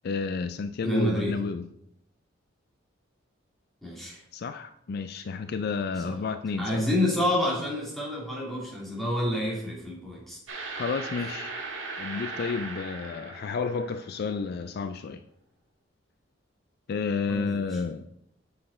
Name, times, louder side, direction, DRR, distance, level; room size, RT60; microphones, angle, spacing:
voice 1, 0.0-1.6 4.3-6.8 10.8-11.5 12.0-15.2 16.9-18.1, left 5 dB, 55° left, 10 dB, 0.4 m, -31 dB
voice 2, 0.8-1.4 3.8-4.2 6.0-6.1 6.6-10.4 17.3-17.7, left 1 dB, ahead, -5 dB, 2.7 m, -28 dB
sound 1, 10.5-14.4, right 3 dB, 80° right, 2.0 m, -38 dB
7.5 x 6.3 x 4.2 m, 0.74 s
head